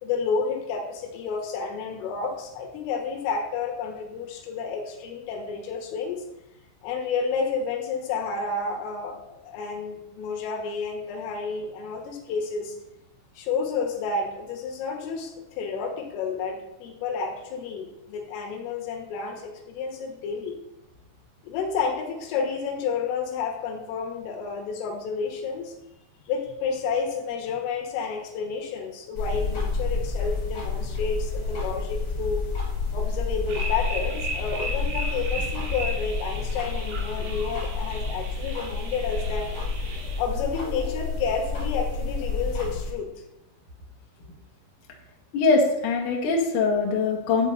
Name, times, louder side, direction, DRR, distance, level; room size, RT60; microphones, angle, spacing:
voice 1, 0.0-6.2 6.8-12.8 13.4-20.6 21.4-25.7 26.3-32.5 32.9-39.5 40.2-43.1, left 5 dB, 80° left, 2 dB, 3.8 m, -30 dB
sound 1, 29.2-42.9, left 4 dB, 35° left, 3.6 m, -29 dB
sound 2, 33.5-40.2, right 3 dB, 65° right, 3.6 m, -36 dB
voice 2, 45.3-47.5, left 4 dB, 55° left, -1 dB, 2.4 m, -22 dB
11.5 x 8.1 x 4.0 m, 0.91 s
omnidirectional pair, 5.8 m